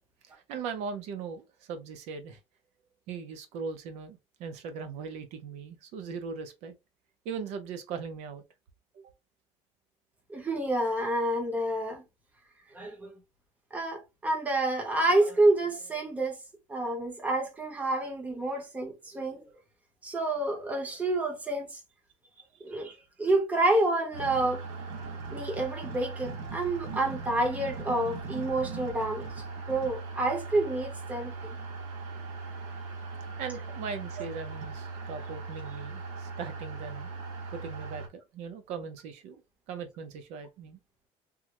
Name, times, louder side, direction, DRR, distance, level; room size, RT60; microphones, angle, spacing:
voice 1, 0.2-2.4 3.1-6.7 7.2-8.4 8.9-9.1 22.5-22.9 33.4-37.1 37.5-39.4 39.7-40.8, right 5 dB, 70° right, 0.6 m, -39 dB
voice 2, 10.3-12.0 12.7-13.1 13.7-16.4 16.7-19.5 20.0-21.8 22.6-24.6 25.3-29.3 29.7-31.6, right 2 dB, 15° right, 0.8 m, -28 dB
sound 1, 24.1-38.1, right 4 dB, 90° right, 1.0 m, -39 dB
3.6 x 2.1 x 2.9 m
cardioid pair, 180°, 12 cm